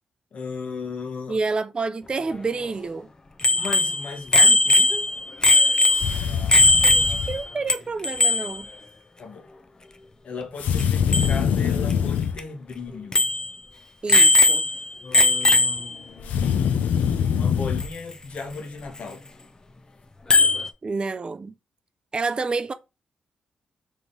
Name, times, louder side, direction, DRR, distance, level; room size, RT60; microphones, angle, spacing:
voice 1, 0.3-1.4 3.6-5.1 9.2-9.5 10.2-13.3 15.0-19.2, left 4 dB, 60° left, 1.0 m, -36 dB
voice 2, 1.3-3.1 6.8-8.7 14.0-14.6 20.8-21.5 22.1-22.7, right 4 dB, 40° right, 0.4 m, -29 dB
Bicycle bell, 3.4-7.4 7.7-7.8 8.0-8.6 10.8-10.9 11.1-11.3 11.9-12.0 12.4-12.5 13.1-13.5 14.1-14.8 15.1-15.9 17.8-17.9 20.3-20.7, left 2 dB, 30° left, 0.6 m, -18 dB
sound 1, 5.9-7.4 10.6-12.4 16.2-17.9, left 7 dB, 85° left, 0.5 m, -24 dB
3.7 x 3.0 x 3.9 m
cardioid pair, 65°, 3 cm